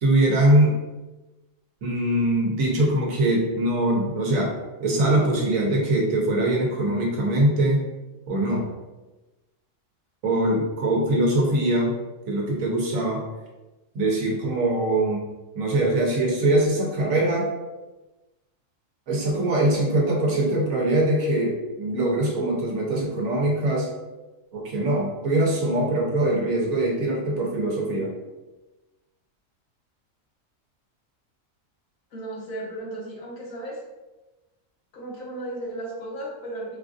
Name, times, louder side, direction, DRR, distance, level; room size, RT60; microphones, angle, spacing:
voice 1, 0.0-0.8 1.8-4.5 4.8-7.9 8.3-8.7 10.2-11.9 12.3-13.2 13.9-15.3 15.5-17.5 19.1-23.9 24.5-28.1, right 1 dB, 80° right, -1 dB, 1.2 m, -22 dB
voice 2, 32.1-33.8 34.9-36.8, right 1 dB, 80° left, -4 dB, 1.4 m, -35 dB
5.0 x 2.5 x 2.5 m, 1.1 s
omnidirectional pair, 1.4 m